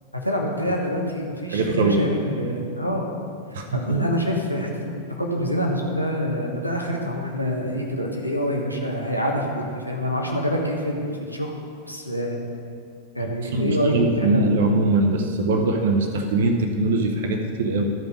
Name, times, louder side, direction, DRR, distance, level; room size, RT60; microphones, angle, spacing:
voice 1, 0.2-3.1 3.7-12.4 13.1-14.4, equal, 90° left, 0 dB, 1.2 m, -26 dB
voice 2, 1.5-2.1 3.5-4.1 13.2-17.9, right 2 dB, 60° right, 4 dB, 0.8 m, -22 dB
12.0 x 5.2 x 5.1 m, 2.2 s
figure-of-eight pair, 90°, 0 cm